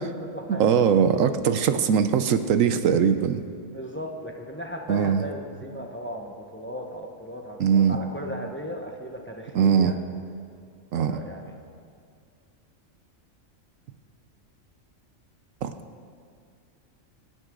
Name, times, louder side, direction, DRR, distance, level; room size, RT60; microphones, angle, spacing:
voice 1, 0.0-0.8 3.7-10.0 10.9-11.5, equal, 10° left, 1 dB, 1.0 m, -36 dB
voice 2, 0.6-3.4 4.9-5.2 7.6-8.0 9.5-9.9 10.9-11.2 15.6-15.7, right 7 dB, 75° right, 10 dB, 1.1 m, -21 dB
26.0 x 9.1 x 3.8 m, 2.2 s
omnidirectional pair, 1.4 m